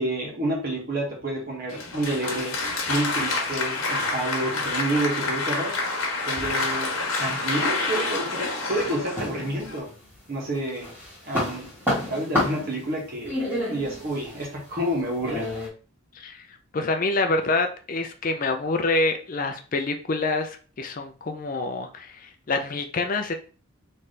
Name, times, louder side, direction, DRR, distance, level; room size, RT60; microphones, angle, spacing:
voice 1, 0.0-5.8 6.3-9.9 10.3-10.9 11.2-11.7 12.1-13.3 13.7-15.5, right 1 dB, 45° right, -3 dB, 1.6 m, -29 dB
Applause, 1.7-9.8, left 3 dB, 65° left, 1.3 m, -28 dB
sound 1, 9.2-10.2 10.6-15.7, left 1 dB, 10° right, 1.7 m, -29 dB
voice 2, 16.7-23.3, left 3 dB, 40° left, 6 dB, 0.4 m, -26 dB
4.2 x 3.2 x 3.3 m, 0.38 s
head